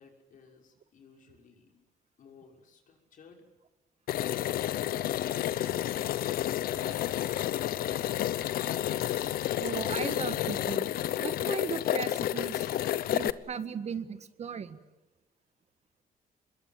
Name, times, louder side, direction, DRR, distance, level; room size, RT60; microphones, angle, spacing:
voice 1, 0.0-1.8 2.2-3.5, left 5 dB, 65° left, 2 dB, 5.9 m, -55 dB
sound 1, 4.1-13.3, left 12 dB, 85° left, 0.9 m, -30 dB
voice 2, 9.6-12.7 13.1-14.8, right 6 dB, 50° right, 11 dB, 1.7 m, -37 dB
26.5 x 21.5 x 9.3 m, 0.98 s
cardioid pair, 120°, 15 cm